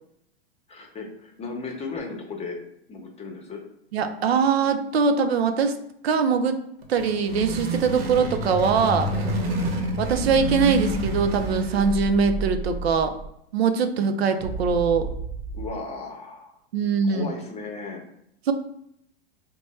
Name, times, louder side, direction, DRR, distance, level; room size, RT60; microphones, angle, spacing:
voice 1, 0.7-2.6 2.9-3.6 15.5-16.6 17.1-18.0, left 4 dB, 20° left, 2 dB, 0.8 m, -35 dB
voice 2, 3.9-5.7 6.0-6.5 6.9-9.1 10.0-13.1 13.5-15.1 16.7-17.3 18.5-18.6, right 5 dB, 90° right, 7 dB, 0.5 m, -22 dB
sound 1, 6.8-12.1, equal, 70° right, 1.0 m, -28 dB
sound 2, 10.0-13.3 14.4-15.7, right 4 dB, 50° right, 0.6 m, -32 dB
4.3 x 2.2 x 3.0 m, 0.74 s
hypercardioid pair, 110°, 30 cm